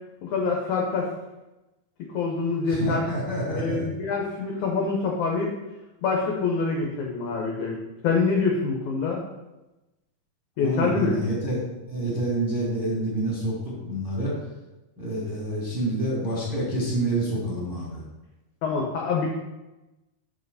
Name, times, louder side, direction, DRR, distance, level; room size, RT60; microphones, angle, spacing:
voice 1, 0.2-1.1 2.1-3.0 3.5-5.5 6.0-9.2 10.6-11.1 18.6-19.3, left 4 dB, 75° left, 0 dB, 1.8 m, -25 dB
voice 2, 2.7-3.9 10.6-11.6 11.9-14.3 15.0-18.0, right 1 dB, 5° right, -5 dB, 1.6 m, -28 dB
7.4 x 5.6 x 4.1 m, 1.0 s
omnidirectional pair, 4.5 m